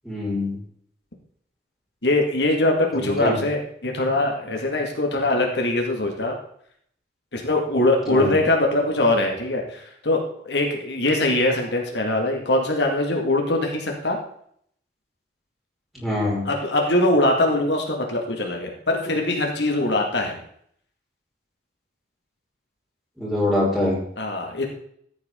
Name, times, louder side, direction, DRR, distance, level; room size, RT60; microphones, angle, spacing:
voice 1, 0.1-0.6 3.0-3.4 8.1-8.4 15.9-16.5 23.2-24.0, left 1 dB, ahead, -7 dB, 5.2 m, -24 dB
voice 2, 2.0-6.3 7.3-14.2 16.4-20.4 24.2-24.6, left 2 dB, 75° left, 1 dB, 2.0 m, -22 dB
14.0 x 8.6 x 3.8 m, 0.66 s
head